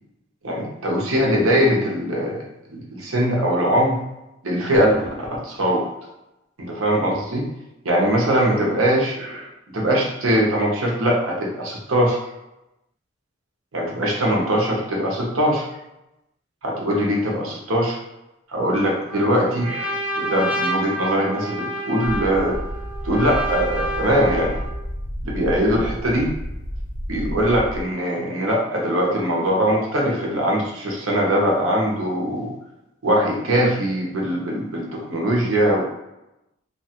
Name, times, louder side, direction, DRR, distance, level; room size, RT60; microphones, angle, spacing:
voice 1, 0.4-4.0 4.4-5.8 6.6-7.5 7.8-9.5 9.7-12.3 13.7-15.7 16.6-18.0 18.5-22.6 23.0-24.6 25.2-26.3 27.1-32.5 33.0-35.8, equal, 90° right, -2 dB, 0.8 m, -21 dB
Trumpet, 19.1-24.8, right 1 dB, 5° right, 0.4 m, -29 dB
sound 1, 22.0-27.8, equal, 85° left, 0.6 m, -31 dB
2.8 x 2.3 x 2.8 m, 0.92 s
head